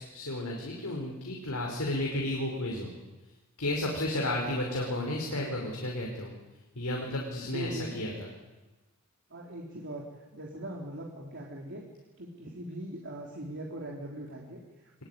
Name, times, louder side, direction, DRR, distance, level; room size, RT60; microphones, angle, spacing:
voice 1, 0.0-2.9 3.6-6.3 6.7-8.3, left 1 dB, 75° left, 0 dB, 5.4 m, -32 dB
voice 2, 7.4-8.1 9.3-10.0 10.3-11.9 12.2-15.0, right 1 dB, 55° right, -1 dB, 3.6 m, -41 dB
25.0 x 22.0 x 9.6 m, 1.2 s
head